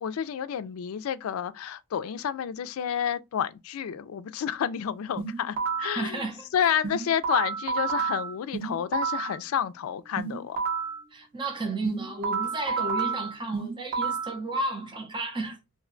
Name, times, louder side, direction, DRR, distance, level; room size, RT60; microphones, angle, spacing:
voice 1, 0.0-6.2 6.5-10.6, left 8 dB, 75° left, 0.3 m, -30 dB
sound 1, 5.2-6.0 6.8-9.4 10.2-11.0 11.8-14.4, right 5 dB, 45° right, 1.0 m, -30 dB
voice 2, 5.9-6.8 11.1-15.6, right 2 dB, 25° right, 0.6 m, -33 dB
2.6 x 2.2 x 3.7 m
head